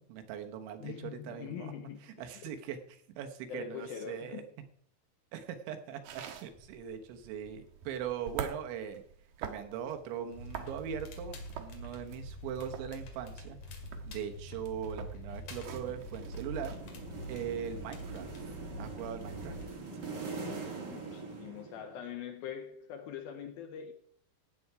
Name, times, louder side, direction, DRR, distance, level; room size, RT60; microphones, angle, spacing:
voice 1, 0.0-1.7 2.0-2.8 3.2-4.4 5.3-9.0 9.4-16.8 17.3-18.5 18.8-19.6, right 8 dB, 85° right, 3.5 m, -40 dB
voice 2, 0.8-2.5 3.5-4.5 20.8-23.9, left 8 dB, 80° left, 2.2 m, -43 dB
sound 1, 6.0-16.8, right 8 dB, 65° right, 2.4 m, -46 dB
Crackle, 10.3-19.7, equal, 55° left, 3.1 m, -45 dB
sound 2, 15.6-22.1, right 4 dB, 50° right, 1.3 m, -43 dB
15.5 x 8.6 x 4.8 m
omnidirectional pair, 5.2 m